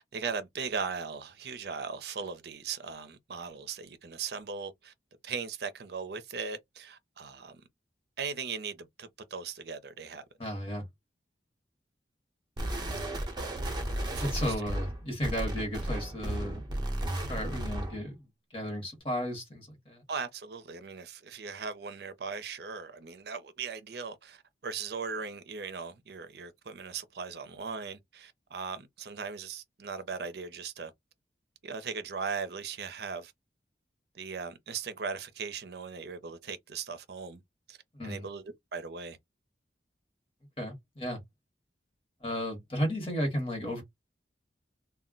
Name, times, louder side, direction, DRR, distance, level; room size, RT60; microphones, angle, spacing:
voice 1, 0.0-4.9 5.2-7.5 8.2-10.2 13.2-13.3 14.2-14.5 20.1-30.9 31.6-33.3 34.2-37.4 37.7-39.2, right 5 dB, 60° right, 0.5 m, -38 dB
voice 2, 10.4-10.8 14.2-16.6 17.3-18.1 18.5-20.0 37.9-38.3 40.6-41.2 42.2-43.8, equal, 30° left, 1.1 m, -34 dB
sound 1, 12.6-18.0, right 1 dB, 25° right, 0.7 m, -34 dB
2.2 x 2.1 x 3.7 m
head